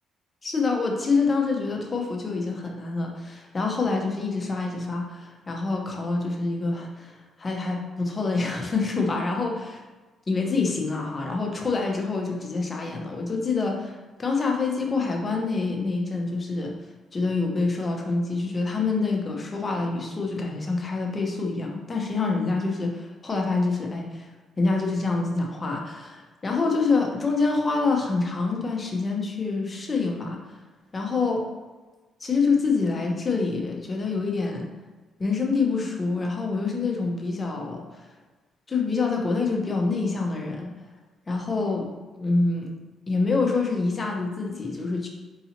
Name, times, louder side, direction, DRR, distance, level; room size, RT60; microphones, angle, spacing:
voice 1, 0.4-9.8 10.3-16.7 17.1-24.3 24.6-30.4 30.9-31.5 32.2-34.7 35.2-38.1 38.7-40.7 41.3-41.9 42.2-42.7 43.1-45.1, left 3 dB, 30° left, 0 dB, 0.8 m, -26 dB
4.7 x 2.7 x 2.8 m, 1.2 s
cardioid pair, 90°, 0 cm